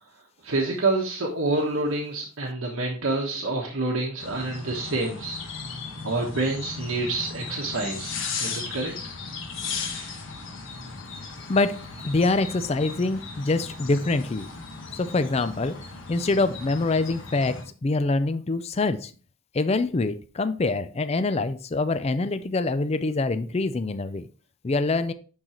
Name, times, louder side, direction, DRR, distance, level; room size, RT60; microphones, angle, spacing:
voice 1, 0.4-5.4 6.0-8.9 9.9-10.1, right 2 dB, 80° right, -1 dB, 1.2 m, -27 dB
sound 1, 4.2-17.6, left 4 dB, 65° left, 1.4 m, -37 dB
voice 2, 12.0-14.5 14.9-15.8 16.1-19.1 19.5-24.3 24.6-25.1, left 3 dB, 30° left, 11 dB, 0.4 m, -25 dB
10.5 x 3.9 x 3.0 m, 0.38 s
head